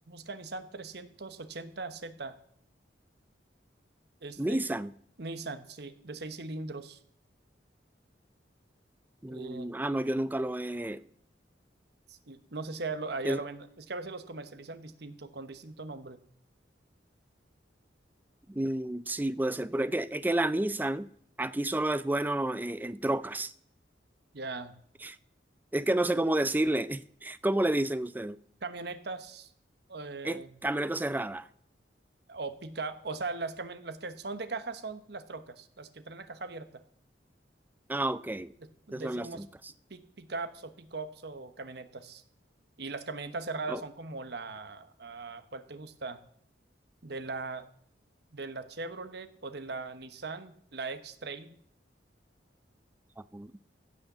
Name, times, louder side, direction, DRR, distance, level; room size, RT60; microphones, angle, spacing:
voice 1, 0.1-2.4 4.2-4.6 5.2-7.0 9.3-9.7 12.1-16.2 24.3-24.8 28.6-29.5 29.9-30.6 32.3-36.8 38.6-39.4 39.9-42.2 42.8-46.2 47.0-47.7 48.3-51.5, right 3 dB, 60° right, 1.1 m, -39 dB
voice 2, 4.4-4.9 9.2-11.0 13.2-13.4 18.5-21.1 21.4-23.5 25.0-25.2 25.7-28.4 30.2-31.5 37.9-38.5 38.9-39.5 43.7-43.8 53.3-53.5, right 1 dB, 10° right, 0.4 m, -30 dB
15.5 x 6.4 x 7.2 m
head